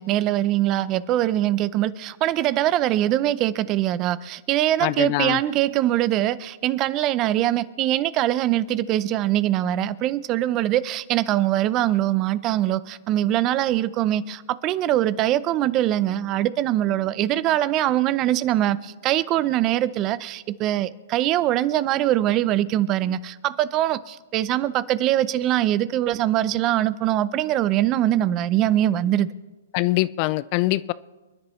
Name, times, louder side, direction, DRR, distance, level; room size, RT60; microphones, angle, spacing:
voice 1, 0.0-29.3, right 13 dB, 30° right, 0.6 m, -22 dB
voice 2, 4.8-5.4 29.7-30.9, left 19 dB, 40° left, 0.4 m, -23 dB
29.0 x 10.5 x 3.2 m
hypercardioid pair, 140°, 0 cm